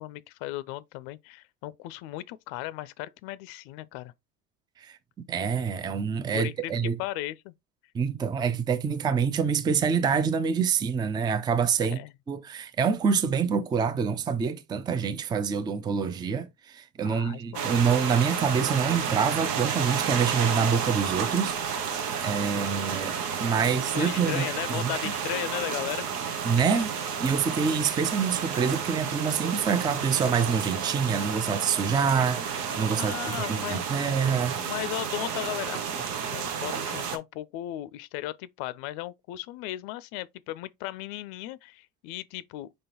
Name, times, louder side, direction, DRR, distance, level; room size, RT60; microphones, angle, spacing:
voice 1, 0.0-4.1 6.3-7.5 8.5-8.6 11.8-12.1 17.0-17.6 22.5-22.6 23.6-26.9 33.0-33.8 34.6-42.7, left 16 dB, 55° left, 0.5 m, -36 dB
voice 2, 5.3-7.0 7.9-12.0 12.3-21.6 22.2-24.9 26.4-26.9 27.2-34.6, right 6 dB, 10° right, 0.3 m, -26 dB
sound 1, 17.5-37.2, right 7 dB, 80° right, 0.9 m, -31 dB
5.0 x 3.7 x 2.8 m
hypercardioid pair, 75°, 47 cm